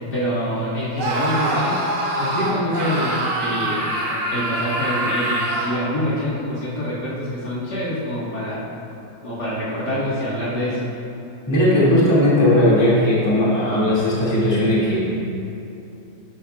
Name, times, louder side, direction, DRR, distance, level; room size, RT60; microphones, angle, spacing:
voice 1, 0.1-1.8 2.2-3.9 4.3-8.6 9.2-10.8, equal, 55° left, -9 dB, 2.3 m, -25 dB
Screaming, 1.0-5.8, right 1 dB, 45° right, 1.2 m, -24 dB
voice 2, 11.5-15.1, left 1 dB, 10° left, -9 dB, 2.2 m, -17 dB
12.0 x 9.7 x 2.4 m, 2.8 s
omnidirectional pair, 2.3 m